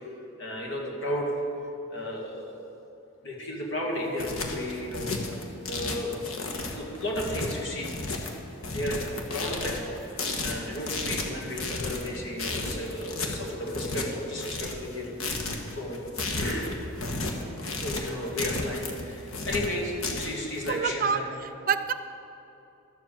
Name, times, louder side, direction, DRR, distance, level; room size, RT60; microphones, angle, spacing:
voice 1, 0.4-1.3 1.9-2.5 3.2-6.2 6.7-8.1 8.7-15.4 15.7-16.0 16.3-16.8 17.8-21.3, left 1 dB, 60° left, -2 dB, 2.3 m, -33 dB
sound 1, 3.9-20.7, left 3 dB, 85° left, 1.4 m, -33 dB
voice 2, 20.7-21.9, right 6 dB, 40° right, 10 dB, 0.4 m, -27 dB
12.5 x 7.3 x 7.5 m, 2.9 s
head